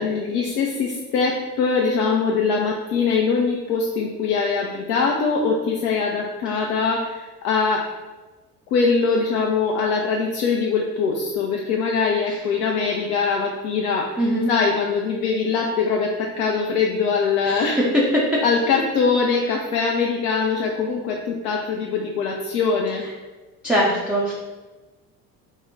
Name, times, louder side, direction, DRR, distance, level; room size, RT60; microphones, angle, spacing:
voice 1, 0.0-7.9 8.7-14.2 14.5-17.8 18.4-23.0, left 5 dB, 65° left, -1 dB, 0.6 m, -22 dB
voice 2, 14.2-14.5 17.4-18.4 23.6-24.3, equal, ahead, -6 dB, 0.4 m, -21 dB
3.7 x 2.1 x 3.6 m, 1.2 s
figure-of-eight pair, 60°, 48 cm